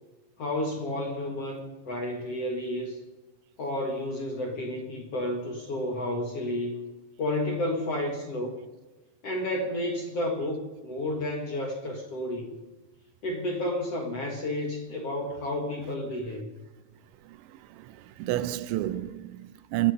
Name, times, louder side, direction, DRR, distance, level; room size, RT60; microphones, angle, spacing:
voice 1, 0.4-3.0 3.6-6.8 7.2-8.5 9.2-12.5 13.2-16.5, left 1 dB, 65° left, 1.5 m, -31 dB
voice 2, 17.7-19.9, right 15 dB, 80° right, 2.9 m, -30 dB
27.0 x 9.2 x 5.3 m
omnidirectional pair, 5.4 m